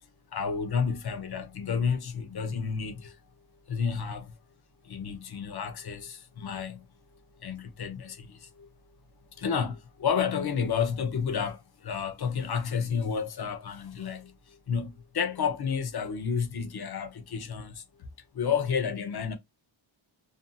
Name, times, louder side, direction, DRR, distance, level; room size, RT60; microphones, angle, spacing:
voice 1, 0.3-3.2 3.7-4.3 4.9-6.8 7.4-8.7 9.4-14.3 14.7-17.8 18.3-19.4, left 6 dB, 50° left, 0.7 m, -31 dB
2.6 x 2.5 x 2.3 m
wide cardioid pair, 115°, 48 cm